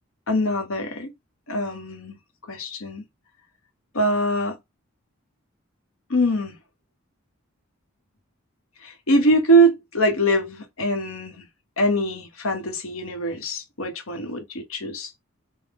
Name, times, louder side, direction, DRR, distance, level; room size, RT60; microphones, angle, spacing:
voice 1, 0.3-1.1 1.5-2.2 2.5-3.1 3.9-4.6 6.1-6.6 8.8-11.4 11.8-15.1, right 1 dB, 80° left, 1.2 m, -23 dB
5.7 x 2.2 x 3.5 m
head